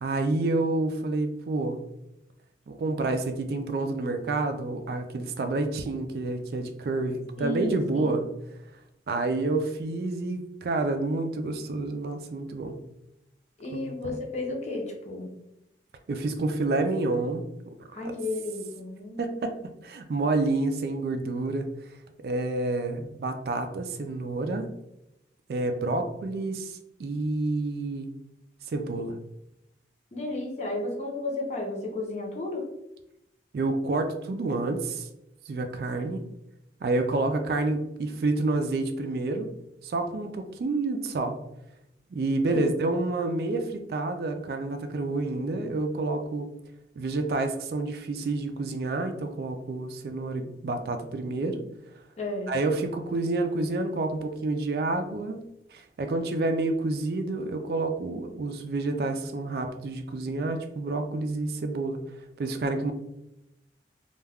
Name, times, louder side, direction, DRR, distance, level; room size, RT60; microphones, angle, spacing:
voice 1, 0.0-1.8 2.7-8.3 9.1-12.8 13.7-13.9 16.1-17.4 18.1-18.2 19.2-19.5 19.8-21.7 22.2-24.7 25.5-28.1 28.7-29.2 33.5-35.1 35.5-36.2 36.8-39.5 39.8-41.4 42.1-46.5 47.0-51.6 52.5-55.4 55.7-62.0 62.4-62.9, right 2 dB, 60° right, 6 dB, 0.3 m, -29 dB
voice 2, 7.4-8.2 13.6-15.3 17.9-19.4 30.1-32.7 35.9-36.1 42.5-42.7 52.2-52.5, left 2 dB, 40° left, 0 dB, 0.6 m, -33 dB
2.3 x 2.2 x 3.3 m, 0.85 s
head